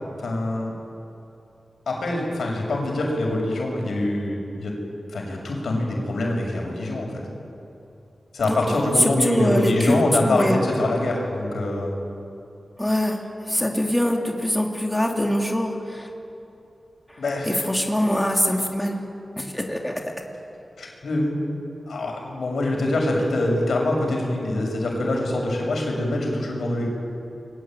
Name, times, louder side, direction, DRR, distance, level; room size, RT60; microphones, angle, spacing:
voice 1, 0.2-0.7 1.9-4.7 5.1-7.2 8.3-12.0 17.2-17.6 20.8-21.5 21.9-26.9, left 1 dB, 85° left, 1 dB, 6.5 m, -24 dB
voice 2, 9.2-10.0 10.3-10.6 12.8-13.2 13.5-16.1 17.5-19.0 19.4-20.0, left 1 dB, 10° left, 1 dB, 2.8 m, -23 dB
29.0 x 22.5 x 9.1 m, 2.7 s
wide cardioid pair, 85°, 0 cm